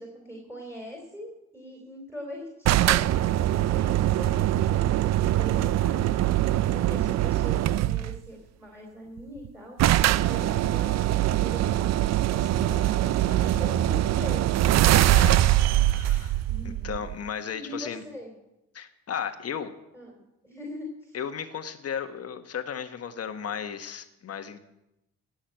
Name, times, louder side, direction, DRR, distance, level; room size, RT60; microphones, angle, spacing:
voice 1, 0.0-9.8 10.2-15.2 16.5-17.0 17.5-18.3 19.9-20.1 20.4-21.2, equal, 5° right, -1 dB, 3.9 m, -42 dB
sound 1, 2.7-8.2 9.2-9.3 9.4-9.5 9.8-17.3, right 13 dB, 60° right, 0.5 m, -23 dB
voice 2, 15.0-15.4 15.7-18.0 18.7-19.7 21.1-24.6, left 7 dB, 55° left, 8 dB, 1.4 m, -35 dB
16.5 x 6.4 x 8.9 m, 0.90 s
cardioid pair, 90°, 30 cm